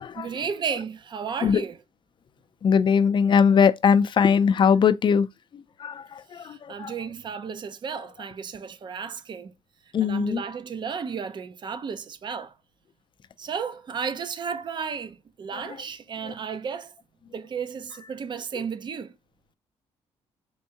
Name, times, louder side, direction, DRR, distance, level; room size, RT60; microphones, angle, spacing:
voice 1, 0.2-1.8 6.4-9.5 10.0-12.5 13.4-16.9 17.3-19.1, right 6 dB, 40° right, 0.6 m, -33 dB
voice 2, 2.6-5.3 5.5-6.9 9.9-10.4 18.5-18.6, left 6 dB, 45° left, 0.4 m, -21 dB
4.5 x 2.6 x 2.7 m
cardioid pair, 90°, 11 cm